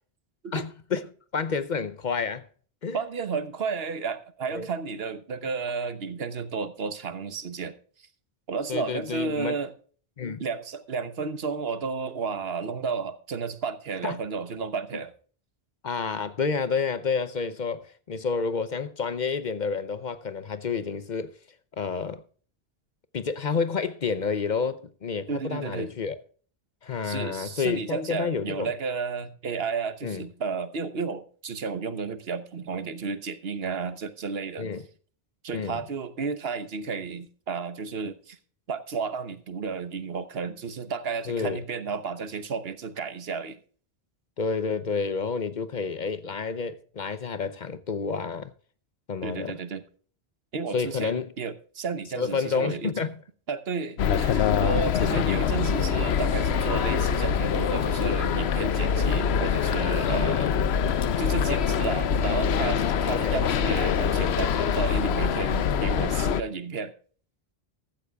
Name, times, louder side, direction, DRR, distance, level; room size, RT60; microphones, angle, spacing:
voice 1, 0.5-2.5 2.8-3.0 4.5-4.7 8.7-9.6 10.2-10.4 14.0-14.2 15.8-21.4 21.8-22.2 23.1-26.2 26.8-28.7 30.0-30.2 34.6-34.8 35.5-35.8 41.3-41.6 44.4-48.5 49.1-49.6 50.7-51.3 52.2-53.1 60.0-60.5 63.1-63.4, left 5 dB, 50° left, 0.8 m, -29 dB
voice 2, 2.9-8.1 8.5-9.7 10.4-15.1 25.3-25.9 27.0-34.7 35.4-38.4 38.7-43.6 49.2-49.8 50.5-52.9 53.5-60.5 61.2-66.9, right 5 dB, 70° right, 1.2 m, -32 dB
sound 1, 54.0-66.4, left 7 dB, 85° left, 1.0 m, -24 dB
15.0 x 13.5 x 2.3 m
omnidirectional pair, 1.1 m